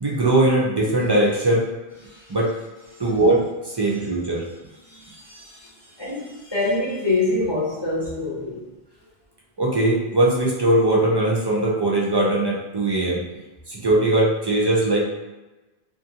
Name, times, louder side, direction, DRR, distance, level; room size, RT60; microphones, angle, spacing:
voice 1, 0.0-1.6 2.3-2.5 3.0-3.5 3.7-4.4 9.6-13.2 13.7-15.0, right 1 dB, 45° right, -4 dB, 0.3 m, -20 dB
voice 2, 2.0-2.4 2.9-3.2 3.9-4.0 4.8-8.7, left 2 dB, 30° left, -6 dB, 0.7 m, -27 dB
2.5 x 2.5 x 2.7 m, 1.1 s
omnidirectional pair, 1.1 m